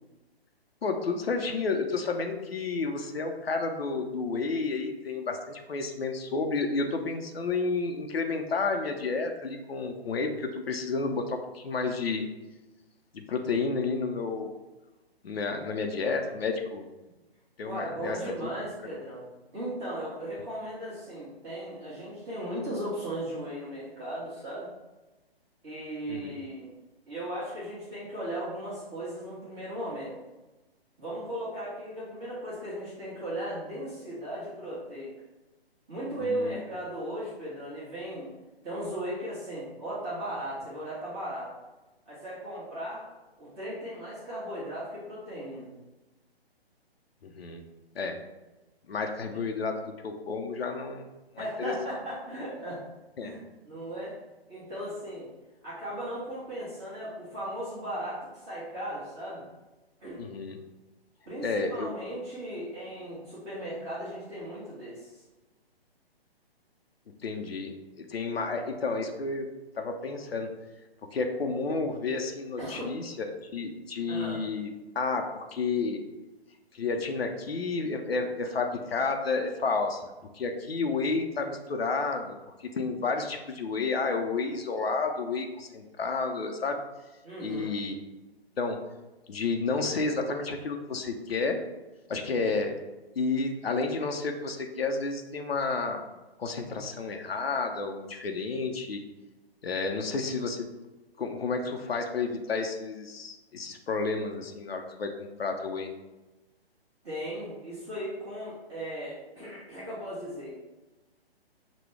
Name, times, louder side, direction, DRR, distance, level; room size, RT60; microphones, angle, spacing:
voice 1, 0.8-12.2 13.1-14.5 15.2-16.9 17.6-18.3 26.1-26.3 36.2-36.8 47.2-47.6 48.0-48.2 48.9-49.8 50.0-51.1 51.3-51.7 53.2-53.4 60.2-60.6 61.4-61.9 67.2-69.5 69.8-70.5 71.1-74.7 75.0-76.0 76.7-86.8 87.4-88.0 88.6-88.8 89.3-91.6 92.1-92.8 93.2-96.0 96.4-99.0 99.6-100.7 101.2-105.9, left 4 dB, 70° left, 4 dB, 0.6 m, -31 dB
voice 2, 17.6-19.2 19.5-24.7 25.6-26.7 27.1-30.2 31.0-35.1 35.9-38.3 38.6-41.5 42.1-43.0 43.4-45.7 49.3-49.4 51.4-52.8 53.2-53.4 53.6-54.2 54.5-55.3 55.6-59.5 60.0-60.2 61.3-65.2 72.6-72.9 74.1-74.4 87.2-87.7 107.0-110.5, right 1 dB, 25° right, -9 dB, 1.2 m, -37 dB
6.1 x 2.2 x 3.3 m, 1.1 s
figure-of-eight pair, 135°, 31 cm